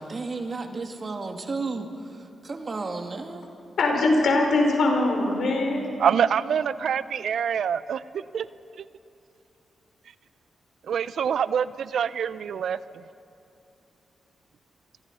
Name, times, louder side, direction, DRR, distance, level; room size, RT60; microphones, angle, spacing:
voice 1, 0.0-3.5, right 3 dB, 45° right, 2.5 m, -33 dB
voice 2, 3.8-5.9, left 2 dB, 75° left, 5.2 m, -22 dB
voice 3, 6.0-8.0 8.3-8.5 10.9-12.8, right 8 dB, 75° right, 0.6 m, -25 dB
27.5 x 24.0 x 5.6 m
cardioid pair, 60°, 0 cm